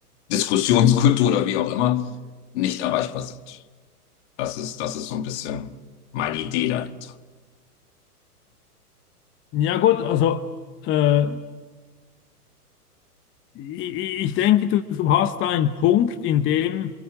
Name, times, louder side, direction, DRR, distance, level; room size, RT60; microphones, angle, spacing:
voice 1, 0.3-2.1 2.5-3.6 4.4-5.8 6.1-7.1, left 10 dB, 45° left, 1.7 m, -23 dB
voice 2, 9.5-10.4 10.8-11.4 13.6-16.9, left 11 dB, 25° left, 1.0 m, -21 dB
28.0 x 27.0 x 7.8 m
hypercardioid pair, 115°, 47 cm